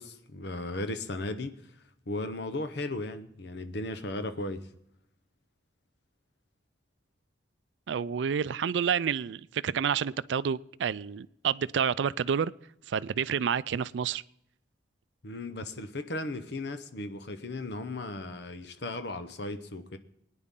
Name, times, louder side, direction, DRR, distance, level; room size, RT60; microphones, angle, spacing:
voice 1, 0.0-1.5 2.1-4.7 15.2-20.0, left 2 dB, 65° left, 0.9 m, -36 dB
voice 2, 7.9-12.5 12.9-14.2, right 7 dB, 75° right, 0.4 m, -29 dB
22.5 x 9.9 x 3.7 m
head